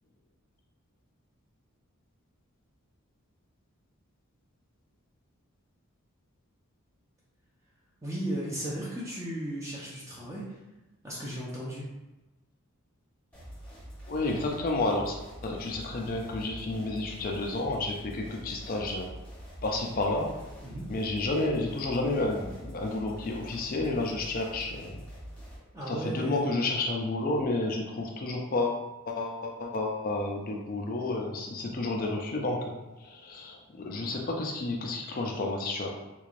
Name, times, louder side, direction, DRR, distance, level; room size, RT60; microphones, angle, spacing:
voice 1, 8.0-10.6 11.0-11.9 20.6-20.9 25.7-26.5, right 1 dB, 15° right, -6 dB, 0.6 m, -35 dB
sound 1, 13.3-25.6, equal, 5° left, 0.9 m, -45 dB
voice 2, 14.1-15.2 15.4-19.1 19.6-20.3 20.9-25.0 25.9-35.9, left 2 dB, 40° left, 0 dB, 0.4 m, -31 dB
3.6 x 3.1 x 2.5 m, 1.1 s
head